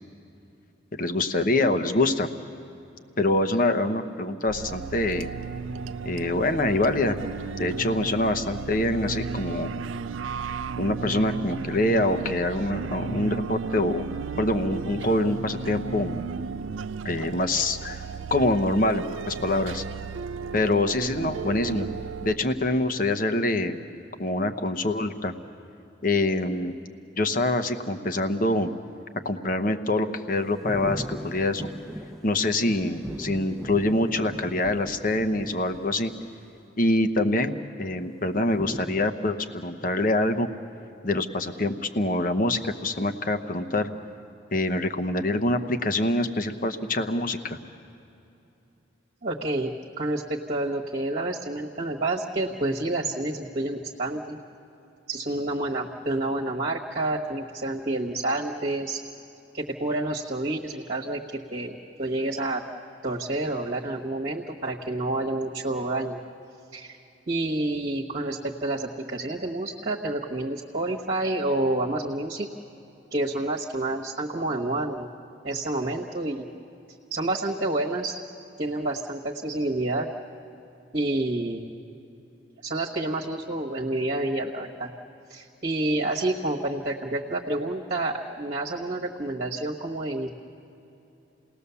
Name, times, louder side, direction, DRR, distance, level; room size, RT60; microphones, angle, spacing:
voice 1, 0.9-2.3 3.2-5.3 6.0-7.2 7.6-9.7 10.8-14.0 14.4-16.2 17.0-18.0 18.3-19.8 20.5-21.9 22.2-23.8 24.2-25.3 26.0-26.8 27.2-28.7 29.2-31.7 32.2-36.1 36.8-40.5 41.0-43.9 44.5-47.6, left 2 dB, 45° left, 8 dB, 1.0 m, -25 dB
sound 1, 4.5-22.4, right 5 dB, 85° right, 0.5 m, -34 dB
sound 2, 30.4-36.4 38.5-39.1, equal, ahead, 0.8 m, -39 dB
voice 2, 49.2-49.7 50.0-54.4 55.1-59.0 59.5-62.6 63.0-66.2 66.7-67.0 67.3-72.5 73.1-75.1 75.4-76.4 77.1-78.2 78.6-80.1 80.9-81.7 82.6-84.9 85.3-90.3, right 2 dB, 50° right, -2 dB, 1.3 m, -29 dB
29.0 x 19.0 x 7.0 m, 2.8 s
head